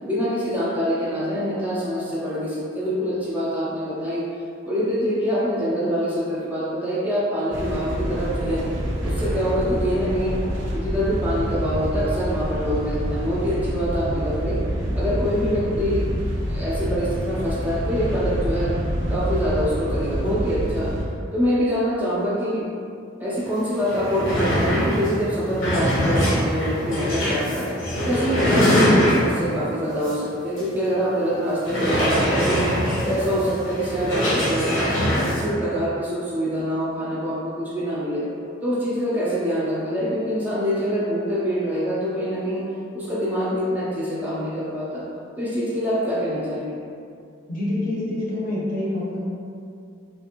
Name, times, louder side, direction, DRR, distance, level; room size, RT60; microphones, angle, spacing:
voice 1, 0.0-4.2 4.7-8.6 9.0-10.4 10.7-14.6 14.9-16.0 16.3-18.7 19.1-20.9 21.3-22.6 23.2-27.7 28.0-32.6 33.0-34.9 35.4-38.2 38.6-42.6 42.9-45.0 45.4-46.8, equal, 10° right, -9 dB, 0.4 m, -25 dB
sound 1, 7.5-21.0, equal, 75° right, 0.5 m, -27 dB
sound 2, 23.5-23.6 23.8-29.5 30.0-30.2 30.6-30.7 31.6-35.5, equal, 80° left, 0.9 m, -22 dB
voice 2, 47.5-49.2, left 1 dB, 45° left, -6 dB, 0.7 m, -27 dB
3.3 x 2.5 x 2.8 m, 2.4 s
head